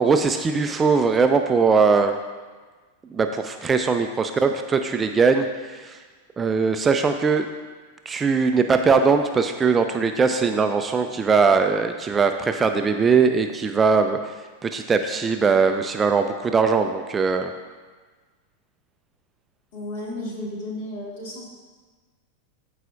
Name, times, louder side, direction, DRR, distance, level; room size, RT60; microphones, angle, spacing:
voice 1, 0.0-2.2 3.1-6.0 6.4-7.5 8.1-14.3 14.6-17.5, right 5 dB, 20° right, 6 dB, 0.4 m, -20 dB
voice 2, 19.7-21.4, left 1 dB, 50° left, -2 dB, 1.9 m, -33 dB
13.5 x 4.9 x 2.5 m, 1.4 s
figure-of-eight pair, 90°, 0 cm